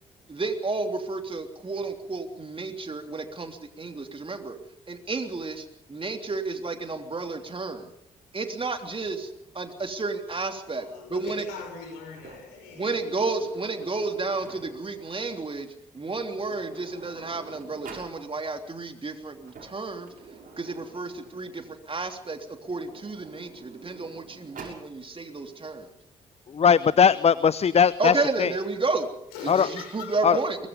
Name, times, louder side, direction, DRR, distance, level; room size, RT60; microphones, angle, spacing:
voice 1, 0.3-4.6 4.9-5.7 5.9-7.9 8.3-11.5 12.8-20.1 20.6-25.9 28.0-29.1 29.4-30.6, right 3 dB, 30° right, 5 dB, 3.3 m, -31 dB
voice 2, 10.6-13.1 14.7-14.8 29.3-30.1, left 5 dB, 75° left, 4 dB, 6.4 m, -41 dB
Sliding door, 12.1-15.0 15.9-16.0 16.3-18.2 19.3-21.8 22.6-24.9, right 4 dB, 55° right, 6.4 m, -47 dB
voice 3, 26.5-28.1 28.4-28.5 29.5-29.7 30.2-30.4, left 7 dB, 40° left, 18 dB, 0.7 m, -19 dB
23.0 x 21.5 x 5.4 m, 0.78 s
hypercardioid pair, 45°, 17 cm